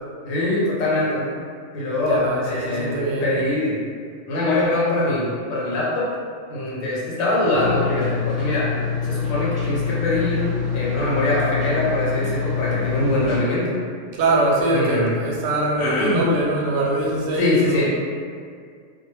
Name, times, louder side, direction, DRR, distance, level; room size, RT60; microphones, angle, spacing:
voice 1, 0.2-1.4 1.7-3.8 4.3-6.1 6.5-8.7 9.0-13.8 14.7-15.2 15.8-16.2 17.3-17.9, left 1 dB, 80° left, -6 dB, 1.0 m, -23 dB
voice 2, 2.1-3.3 14.2-17.9, right 2 dB, 65° right, -3 dB, 0.8 m, -23 dB
sound 1, 7.5-13.4, left 6 dB, 5° right, 0.9 m, -25 dB
2.3 x 2.1 x 3.0 m, 2.1 s
omnidirectional pair, 1.4 m